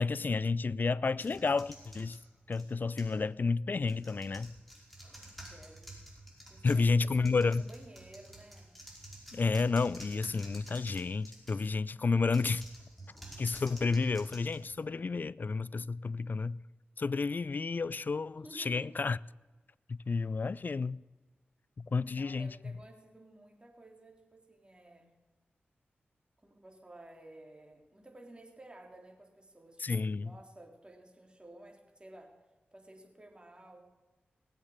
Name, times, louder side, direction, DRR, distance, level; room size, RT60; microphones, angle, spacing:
voice 1, 0.0-2.2 2.5-4.5 6.6-7.6 9.3-12.6 13.4-16.6 17.0-19.2 19.9-21.0 21.8-22.5 29.8-30.3, left 4 dB, 50° left, 0.4 m, -31 dB
sound 1, 1.2-3.2 3.8-11.7 12.3-15.2, right 1 dB, 5° left, 5.2 m, -51 dB
voice 2, 5.4-6.0 6.5-8.7 18.4-19.0 22.0-25.1 26.4-32.3 32.7-33.8, right 1 dB, 25° right, 3.4 m, -54 dB
19.5 x 8.1 x 6.5 m
cardioid pair, 45°, 4 cm